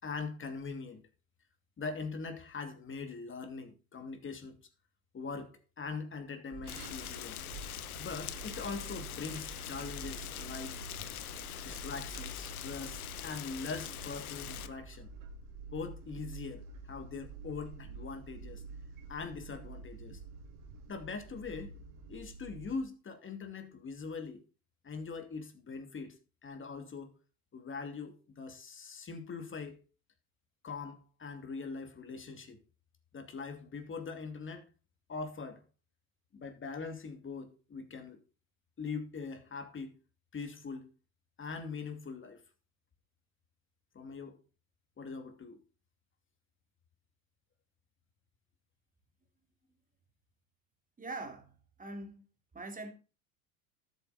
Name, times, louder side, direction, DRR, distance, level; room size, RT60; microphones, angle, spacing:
voice 1, 0.0-1.0 1.8-4.6 5.1-7.4 8.0-10.8 11.6-15.1 15.7-18.6 19.1-20.2 20.9-21.7 22.1-24.4 24.8-27.1 27.5-29.8 30.6-32.6 33.1-34.6 35.1-35.6 36.3-38.2 38.8-39.9 40.3-40.9 41.4-42.4 43.9-44.4 45.0-45.6, left 4 dB, 25° left, 2.7 m, -42 dB
sound 1, 6.5-22.8, right 4 dB, 45° right, 2.4 m, -48 dB
Rain, 6.7-14.7, left 12 dB, 85° left, 1.2 m, -43 dB
voice 2, 51.0-52.2 52.5-52.9, right 2 dB, 20° right, 3.1 m, -43 dB
12.5 x 8.0 x 4.3 m
hypercardioid pair, 85°, 43 cm